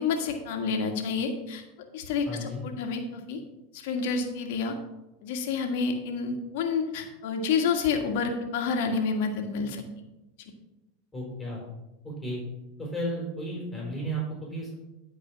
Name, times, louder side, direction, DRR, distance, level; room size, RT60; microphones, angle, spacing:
voice 1, 0.0-1.6 1.9-3.4 3.7-4.8 5.2-9.8, left 5 dB, 65° left, 4 dB, 1.6 m, -29 dB
voice 2, 2.3-2.6 11.1-11.6 12.0-12.4 12.8-14.7, right 1 dB, 10° left, -3 dB, 4.1 m, -33 dB
11.5 x 4.9 x 6.1 m, 0.99 s
hypercardioid pair, 95°, 0 cm